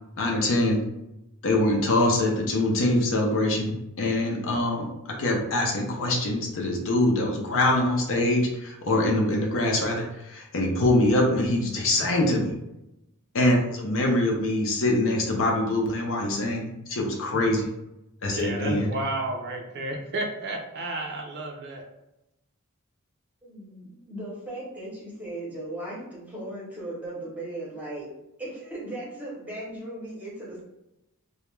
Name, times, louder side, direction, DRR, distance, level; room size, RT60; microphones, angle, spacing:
voice 1, 0.2-0.8 1.4-4.9 5.2-12.5 13.3-17.7 18.2-18.9, left 1 dB, 60° left, 0 dB, 0.5 m, -24 dB
voice 2, 18.3-21.9, right 2 dB, 50° right, 2 dB, 0.4 m, -32 dB
voice 3, 23.4-28.1 28.4-30.6, right 1 dB, 5° right, -5 dB, 0.8 m, -37 dB
2.3 x 2.1 x 3.0 m, 0.89 s
head